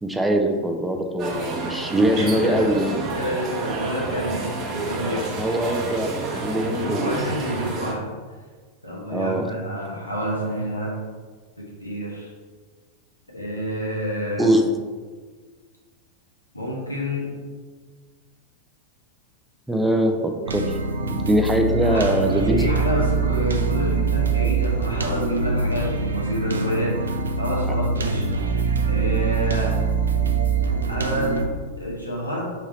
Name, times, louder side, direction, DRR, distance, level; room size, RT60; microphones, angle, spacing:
voice 1, 0.0-2.9 5.4-7.1 9.1-9.5 14.4-14.7 19.7-22.7 27.7-27.8, right 1 dB, 5° right, 3 dB, 0.5 m, -22 dB
sound 1, 1.2-7.9, right 3 dB, 30° right, 0.9 m, -30 dB
voice 2, 2.1-2.9 3.1-5.3 6.8-8.1 8.8-11.0 11.6-12.3 13.3-14.5 16.5-17.3 21.6-28.3 28.9-29.8 30.9-32.5, equal, 85° left, -4 dB, 1.1 m, -28 dB
sound 2, 20.5-31.5, right 5 dB, 70° right, 0.4 m, -24 dB
3.5 x 3.1 x 4.2 m, 1.5 s
figure-of-eight pair, 90°, 0 cm